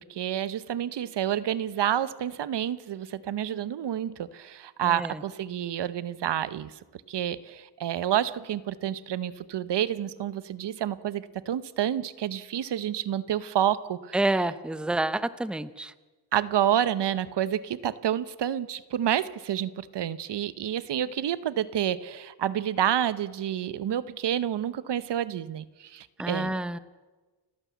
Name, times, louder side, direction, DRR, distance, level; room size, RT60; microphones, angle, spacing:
voice 1, 0.0-6.7 7.1-14.2 16.3-26.5, right 10 dB, 80° right, 16 dB, 1.0 m, -29 dB
voice 2, 4.8-5.2 14.1-15.9 26.2-26.8, right 2 dB, ahead, 14 dB, 0.7 m, -28 dB
29.5 x 12.0 x 8.4 m, 1.3 s
wide cardioid pair, 120°, 41 cm